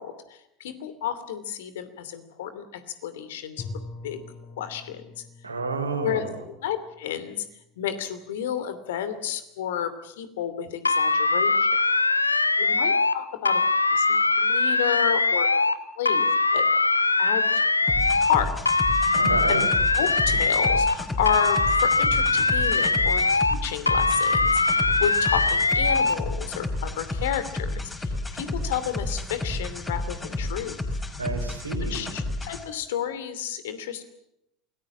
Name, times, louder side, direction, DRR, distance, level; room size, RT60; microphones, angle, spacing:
voice 1, 0.0-3.6 4.0-4.2 4.6-5.0 6.0-6.3 6.6-7.4 7.8-11.8 12.6-13.6 13.9-15.5 16.0-16.3 16.5-16.6 17.2-17.5 17.8-17.9 18.2-18.5 19.5-19.6 19.9-30.8 31.9-34.0, left 9 dB, 65° left, 11 dB, 2.7 m, -31 dB
Bowed string instrument, 3.6-8.4, left 3 dB, 35° left, 7.1 m, -44 dB
voice 2, 5.4-6.4 19.1-19.7 31.2-32.1, right 3 dB, 85° right, 6 dB, 3.5 m, -30 dB
sound 1, 10.9-13.2 13.5-15.8 16.1-18.4 18.7-21.0 21.3-23.6 23.9-26.2, left 3 dB, 85° left, 0.9 m, -22 dB
sound 2, 17.9-32.6, left 2 dB, 15° left, 4.9 m, -31 dB
28.0 x 19.5 x 7.4 m, 0.84 s
figure-of-eight pair, 70°, 0 cm